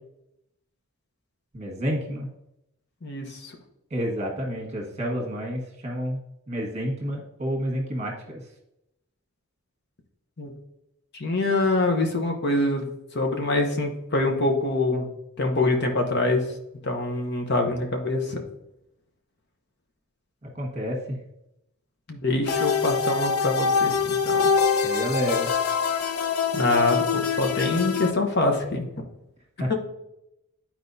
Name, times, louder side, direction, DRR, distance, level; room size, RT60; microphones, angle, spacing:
voice 1, 1.5-2.3 3.9-6.2 6.5-8.4 20.4-21.2 24.8-25.5 29.6-29.7, equal, 30° right, 0 dB, 1.5 m, -29 dB
voice 2, 3.0-3.5 10.4-10.5 11.1-12.9 13.1-15.1 15.4-16.4 16.8-18.4 22.1-24.4 26.5-28.9 29.7-29.8, left 2 dB, 50° left, 3 dB, 0.9 m, -24 dB
sound 1, 22.5-28.1, left 6 dB, 75° left, 0.6 m, -24 dB
11.5 x 4.5 x 2.7 m, 0.85 s
head